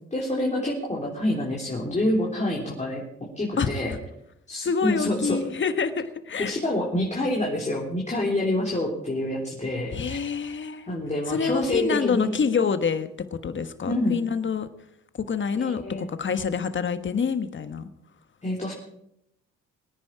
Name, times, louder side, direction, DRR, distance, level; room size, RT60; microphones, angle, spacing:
voice 1, 0.1-3.9 4.5-5.4 6.4-10.2 10.9-12.4 13.9-14.2 15.5-16.1 18.4-18.7, left 1 dB, 25° left, -3 dB, 3.7 m, -27 dB
voice 2, 4.6-6.6 9.9-10.9 11.3-13.1 13.4-14.7 15.2-17.8, left 6 dB, 40° left, 10 dB, 1.4 m, -27 dB
22.5 x 9.7 x 4.8 m, 0.77 s
cardioid pair, 90°, 30 cm